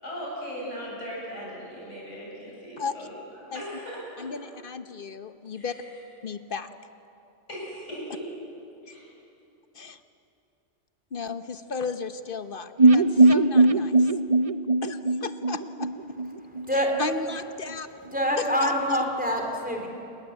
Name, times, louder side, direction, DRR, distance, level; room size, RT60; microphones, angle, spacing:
voice 1, 0.0-4.3 5.5-5.9 7.5-8.3 8.8-9.1, equal, 80° left, -5 dB, 8.1 m, -38 dB
voice 2, 2.8-3.1 3.5-3.6 4.2-5.7 6.2-6.7 9.7-10.0 11.1-14.1 14.8-16.2 16.7-17.9 18.4-19.0, left 4 dB, 50° left, 10 dB, 1.1 m, -34 dB
sound 1, 12.8-16.7 16.9-17.0 17.3-17.4, right 2 dB, 35° right, 0.7 m, -20 dB
voice 3, 18.1-19.9, equal, 5° right, 1 dB, 4.1 m, -25 dB
28.5 x 21.0 x 8.3 m, 2.7 s
omnidirectional pair, 1.2 m